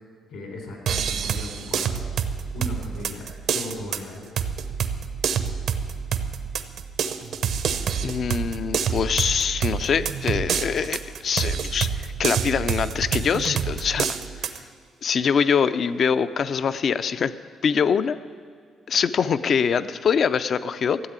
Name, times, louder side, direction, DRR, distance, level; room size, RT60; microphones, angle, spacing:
voice 1, 0.3-2.0 2.5-3.2 3.5-4.3, left 2 dB, 75° left, 2 dB, 4.0 m, -37 dB
sound 1, 0.9-14.6, right 7 dB, 75° right, 0.8 m, -27 dB
voice 2, 8.0-14.1 14.4-14.5 15.0-17.3 17.6-18.2 18.9-21.0, left 6 dB, 55° left, 13 dB, 0.5 m, -24 dB
13.5 x 8.1 x 8.9 m, 2.1 s
cardioid pair, 90°, 0 cm